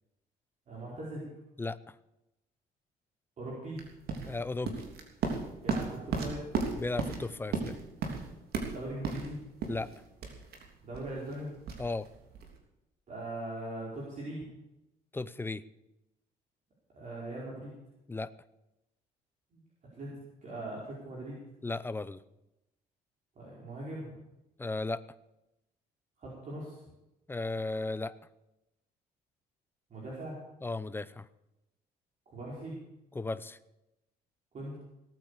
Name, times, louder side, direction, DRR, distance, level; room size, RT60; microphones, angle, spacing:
voice 1, 0.7-1.3 3.4-3.8 5.6-6.5 8.7-9.4 10.8-11.5 13.1-14.4 16.9-17.7 19.5-19.6 19.9-20.1 20.4-21.4 23.4-24.2 26.2-26.8 29.9-30.4 32.3-32.8 34.5-34.8, right 1 dB, 45° right, -5 dB, 4.9 m, -40 dB
voice 2, 1.6-1.9 4.3-4.8 6.8-7.8 9.7-9.9 11.8-12.1 15.1-15.6 18.1-18.3 21.6-22.2 24.6-25.0 27.3-28.2 30.6-31.3 33.1-33.6, left 3 dB, 15° left, 15 dB, 0.6 m, -35 dB
sound 1, 3.8-12.6, right 5 dB, 70° right, 3.2 m, -36 dB
18.0 x 9.0 x 6.8 m, 0.92 s
cardioid pair, 110°, 17 cm